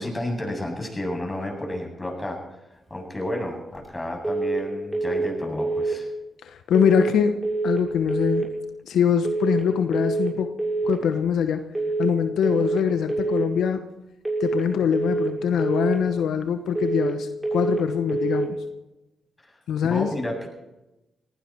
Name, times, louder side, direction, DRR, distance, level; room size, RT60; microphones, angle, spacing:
voice 1, 0.0-2.4 2.9-6.1 19.4-19.5 19.8-20.5, left 1 dB, 15° left, 0 dB, 7.7 m, -31 dB
sound 1, 4.2-4.6 4.9-5.3 5.6-6.0 6.7-7.1 7.4-7.8 8.1-8.5 9.2-9.6 9.9-10.3 10.6-11.0 11.7-12.1 12.4-12.8 13.1-13.5 14.2-14.6 14.9-15.3 15.6-16.0 16.8-17.2 17.4-17.8 18.1-18.5, right 3 dB, 15° right, 7.1 m, -25 dB
voice 2, 6.4-8.5 8.8-10.5 10.8-11.6 12.0-13.8 14.4-18.6 19.7-20.1, left 8 dB, 80° left, 8 dB, 1.0 m, -23 dB
18.5 x 16.5 x 4.5 m, 0.97 s
supercardioid pair, 55°, 0 cm